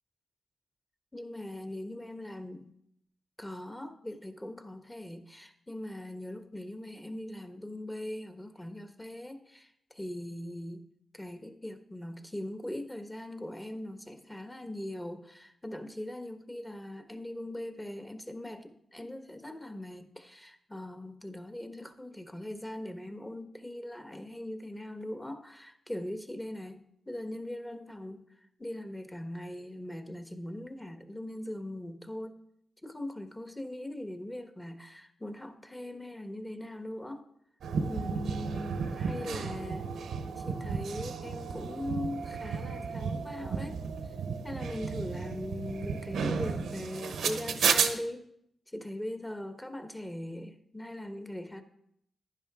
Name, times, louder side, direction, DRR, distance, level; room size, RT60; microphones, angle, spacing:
voice 1, 1.1-2.7 3.4-10.8 11.1-28.2 28.6-32.4 32.8-37.3 37.9-39.9 40.4-43.8 44.4-48.3 48.7-51.6, left 1 dB, 15° left, 7 dB, 1.4 m, -40 dB
sound 1, 37.6-47.9, right 5 dB, 90° right, 0.9 m, -33 dB
10.5 x 10.5 x 3.7 m, 0.73 s
cardioid pair, 55°, 0 cm